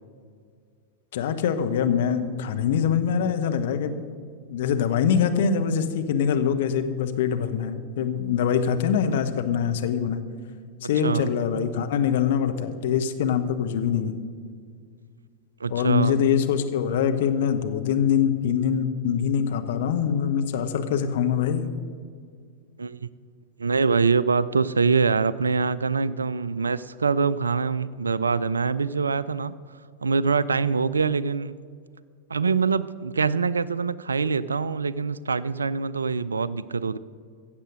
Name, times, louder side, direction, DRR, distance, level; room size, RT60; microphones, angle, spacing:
voice 1, 1.1-4.1 4.5-10.2 10.8-14.2 15.7-21.6, left 8 dB, 55° left, 7 dB, 0.9 m, -24 dB
voice 2, 11.0-11.3 15.6-16.2 22.8-23.1 23.6-29.6 30.0-31.5 32.3-37.0, right 5 dB, 75° right, 18 dB, 0.4 m, -24 dB
15.5 x 7.5 x 6.4 m, 2.1 s
figure-of-eight pair, 90°, 0 cm